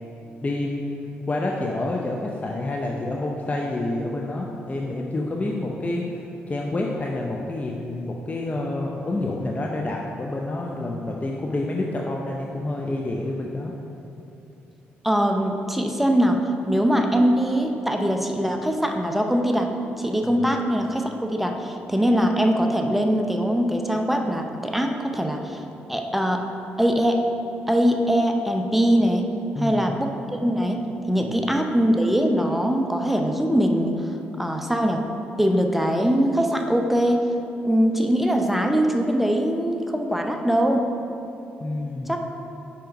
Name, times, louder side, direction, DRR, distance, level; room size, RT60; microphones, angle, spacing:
voice 1, 0.4-6.0 6.5-13.7 20.3-20.4 29.5-29.9 31.2-31.4 41.6-42.1, left 2 dB, 30° left, -1 dB, 0.7 m, -28 dB
voice 2, 15.0-16.4 16.7-19.7 20.0-25.6 25.9-26.4 26.8-27.2 27.7-29.3 29.6-30.1 30.4-30.8 31.1-33.9 34.4-35.0 35.4-37.3 37.6-40.9 42.1-42.2, equal, 5° right, 3 dB, 0.7 m, -22 dB
5.6 x 5.0 x 5.2 m, 2.8 s
supercardioid pair, 50°, 5 cm